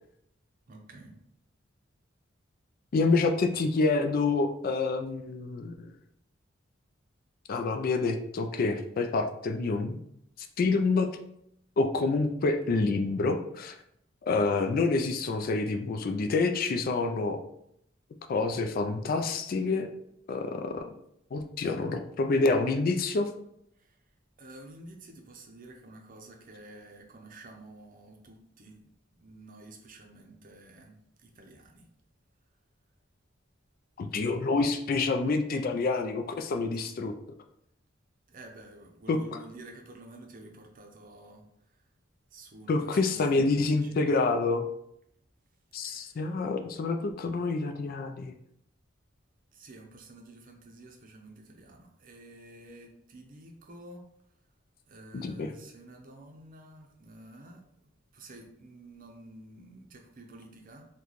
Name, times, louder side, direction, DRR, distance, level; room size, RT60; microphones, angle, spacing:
voice 1, 0.7-1.1 24.4-28.8 29.1-31.0 31.2-31.9 38.3-41.4 42.3-44.1 45.8-46.1 49.5-54.0 54.9-57.6 58.1-60.9, right 2 dB, 45° right, 2 dB, 0.6 m, -50 dB
voice 2, 2.9-5.9 7.5-10.0 10.6-11.1 11.8-13.8 14.2-17.4 18.3-19.9 20.3-20.9 21.3-23.3 34.0-37.1 39.1-39.4 42.7-44.6 45.7-48.3 55.1-55.5, left 3 dB, 50° left, 6 dB, 0.3 m, -27 dB
3.9 x 2.2 x 3.0 m, 0.75 s
head